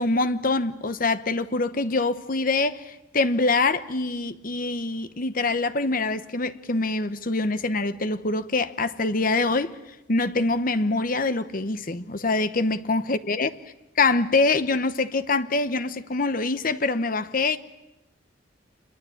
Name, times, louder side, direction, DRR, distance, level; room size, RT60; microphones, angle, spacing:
voice 1, 0.0-9.8 10.1-13.5 14.0-17.6, left 3 dB, 45° left, 1.0 m, -24 dB
27.5 x 22.0 x 8.6 m
head